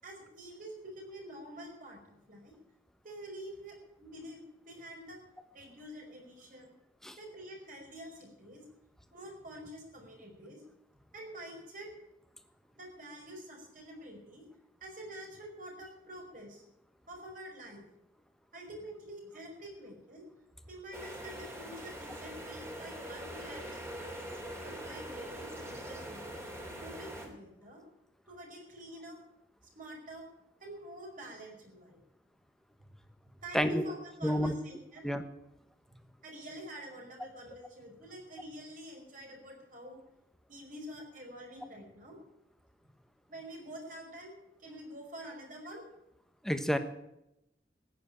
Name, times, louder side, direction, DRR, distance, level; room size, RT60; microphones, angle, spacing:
voice 1, 0.0-2.6 3.0-5.2 5.5-6.7 7.2-8.6 9.1-10.6 11.1-11.9 12.8-14.4 14.8-16.6 17.1-17.9 18.5-20.2 20.7-24.0 24.6-26.3 26.8-27.8 28.3-29.2 29.7-30.3 30.6-32.0 32.8-32.9 33.4-35.1 35.9-36.0 36.2-40.0 40.5-42.2 43.3-45.9, right 1 dB, 50° right, 0 dB, 5.3 m, -47 dB
sound 1, 20.9-27.3, equal, 15° right, 3.1 m, -43 dB
voice 2, 34.2-34.5 35.0-35.2 46.4-46.8, equal, ahead, 8 dB, 1.2 m, -29 dB
14.5 x 10.0 x 8.8 m, 0.84 s
head